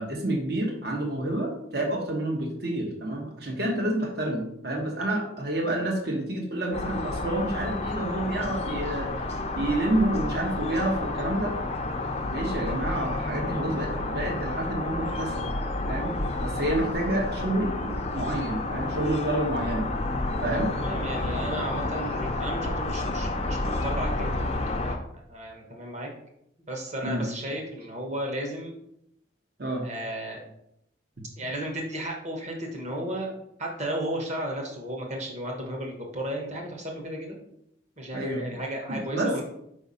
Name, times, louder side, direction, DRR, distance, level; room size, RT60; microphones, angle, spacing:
voice 1, 0.0-9.1 9.6-11.5 12.3-15.5 15.9-19.9 20.4-20.7 27.0-27.2 29.6-29.8 38.1-38.4 38.9-39.4, right 1 dB, 55° right, 0 dB, 1.2 m, -29 dB
sound 1, 6.7-25.0, left 2 dB, 35° left, 0.6 m, -30 dB
voice 2, 20.7-25.0 25.3-26.1 26.7-28.7 29.8-30.4 31.4-33.3 33.6-37.4 38.0-39.4, right 1 dB, 35° right, 0 dB, 1.3 m, -34 dB
5.0 x 3.5 x 5.5 m, 0.76 s
head